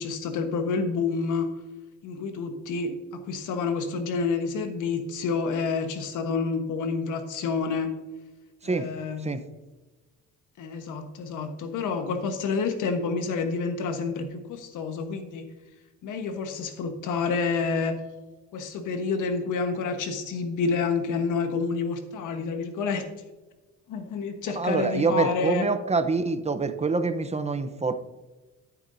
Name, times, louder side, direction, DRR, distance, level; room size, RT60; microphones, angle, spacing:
voice 1, 0.0-1.5 2.0-7.9 8.6-9.3 10.6-15.5 16.0-17.9 18.5-23.1 23.9-25.7, left 4 dB, 85° left, 6 dB, 1.4 m, -28 dB
voice 2, 24.6-27.9, right 4 dB, 20° right, 10 dB, 0.8 m, -26 dB
13.0 x 7.3 x 2.7 m, 1.2 s
cardioid pair, 90°, 30 cm